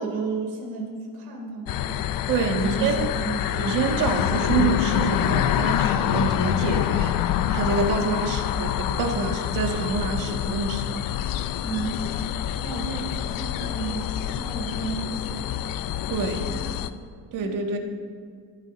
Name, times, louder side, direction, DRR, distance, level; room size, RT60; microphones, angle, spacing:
voice 1, 0.0-2.0 2.6-3.8 11.6-12.3 12.6-15.5 16.4-16.9 17.4-17.6, right 3 dB, 75° right, 1 dB, 3.6 m, -33 dB
sound 1, 1.7-16.9, left 11 dB, 60° left, 0.6 m, -26 dB
voice 2, 2.3-3.1 3.5-11.0 16.1-16.5 17.3-17.8, right 4 dB, 60° right, 4 dB, 1.5 m, -27 dB
21.5 x 9.5 x 4.0 m, 2.1 s
cardioid pair, 165°, 37 cm